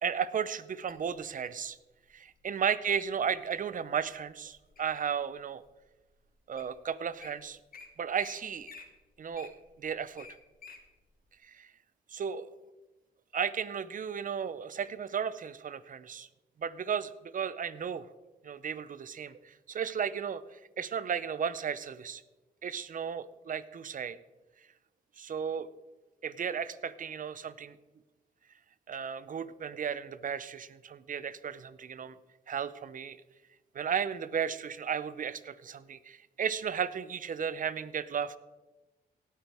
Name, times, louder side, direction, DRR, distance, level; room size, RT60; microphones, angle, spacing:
voice 1, 0.0-1.8 2.1-5.6 6.5-7.6 8.0-8.8 9.2-9.5 9.8-10.3 11.4-11.7 12.1-12.5 13.3-16.3 16.6-18.1 18.4-22.2 22.6-24.2 25.2-25.7 26.2-27.8 28.9-32.2 32.5-33.2 33.7-38.4, right 7 dB, 55° right, 16 dB, 0.7 m, -34 dB
Wild animals, 0.9-1.6 2.3-2.6 3.1-3.6 4.1-5.0 5.6-5.7 6.3-6.4 6.6-6.7 7.0-7.3 7.7-7.9 8.2-8.3 8.6-10.8 11.3-11.4, left 5 dB, 60° left, 1.9 m, -50 dB
17.5 x 9.1 x 3.5 m, 1.1 s
cardioid pair, 70°, 17 cm